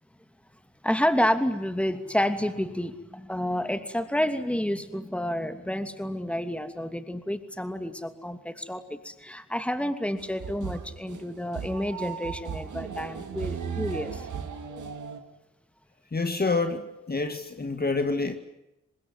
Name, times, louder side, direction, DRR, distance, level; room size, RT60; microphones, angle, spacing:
voice 1, 0.8-14.3 14.7-14.8, equal, 5° left, 2.8 m, -29 dB
sound 1, 10.2-15.2, right 7 dB, 70° right, 2.2 m, -36 dB
voice 2, 16.1-18.4, left 3 dB, 30° left, 1.9 m, -27 dB
25.0 x 20.5 x 9.6 m
supercardioid pair, 45°, 31 cm